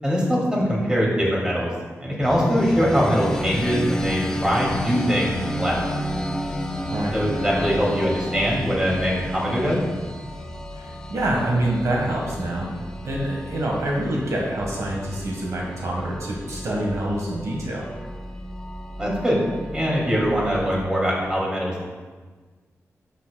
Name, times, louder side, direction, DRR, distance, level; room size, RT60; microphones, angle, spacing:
voice 1, 0.0-1.7 2.0-5.9 7.1-9.8 19.0-19.4 19.7-21.9, equal, 15° right, -4 dB, 2.4 m, -22 dB
sound 1, 2.2-20.9, equal, 10° left, 0.6 m, -32 dB
voice 2, 10.7-12.7 13.0-17.9, right 1 dB, 70° right, -2 dB, 1.5 m, -26 dB
12.0 x 7.3 x 2.3 m, 1.4 s
wide cardioid pair, 105°, 5 cm